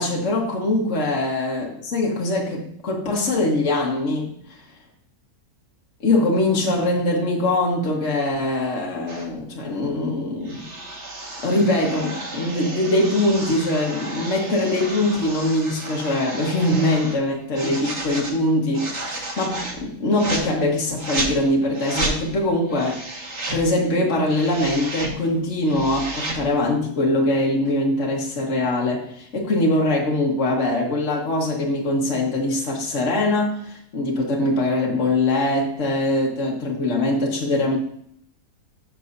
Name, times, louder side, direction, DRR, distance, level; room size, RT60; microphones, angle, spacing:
voice 1, 0.0-4.3 6.0-10.6 11.4-23.0 23.5-37.8, left 1 dB, 50° left, 1.7 m, -22 dB
sound 1, 9.1-9.3 10.4-17.2 17.5-18.3 18.7-19.8 20.1-20.4 21.0-21.3 21.7-22.2 22.7-23.6 24.1-25.1 25.5-26.4, right 2 dB, 45° right, 2.0 m, -32 dB
13.0 x 7.1 x 2.7 m
omnidirectional pair, 1.7 m